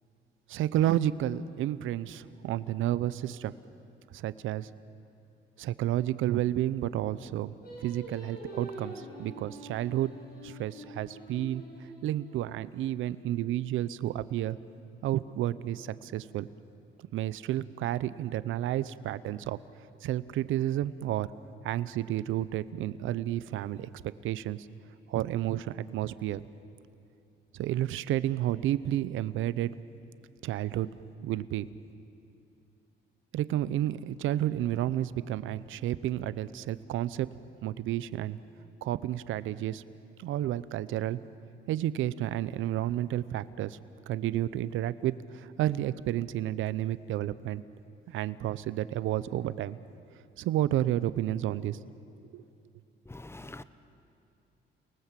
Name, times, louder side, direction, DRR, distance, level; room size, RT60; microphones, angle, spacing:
voice 1, 0.5-3.5 4.1-4.7 5.6-10.1 10.4-11.6 12.0-14.6 15.0-16.5 17.1-19.6 20.0-21.3 21.6-23.9 24.2-24.7 25.1-26.4 27.6-29.7 30.4-30.9 31.2-31.7 33.3-37.3 37.6-38.4 38.8-39.8 40.2-41.2 41.7-43.8 44.1-47.6 48.1-49.8 50.4-51.8 52.3-52.4, right 13 dB, 85° right, 0.7 m, -31 dB
Singing, 7.6-12.9, right 1 dB, 50° left, 6.8 m, -46 dB
voice 2, 53.1-53.6, left 2 dB, 10° left, 1.0 m, -44 dB
30.0 x 19.5 x 7.5 m
cardioid pair, 90°, 20 cm